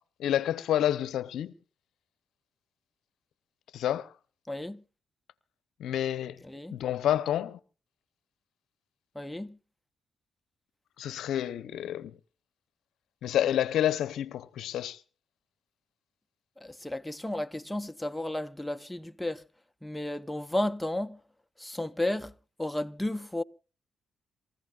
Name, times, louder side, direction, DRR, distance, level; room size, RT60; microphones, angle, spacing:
voice 1, 0.2-1.5 3.7-4.1 5.8-6.4 6.7-7.6 11.0-12.1 13.2-15.0, left 11 dB, 80° left, 0.7 m, -29 dB
voice 2, 4.5-4.8 6.4-6.8 9.1-9.6 16.6-19.4 19.8-21.2 21.6-22.3 22.6-23.4, left 1 dB, 5° left, 0.7 m, -33 dB
27.5 x 15.0 x 2.4 m
supercardioid pair, 60°, 0 cm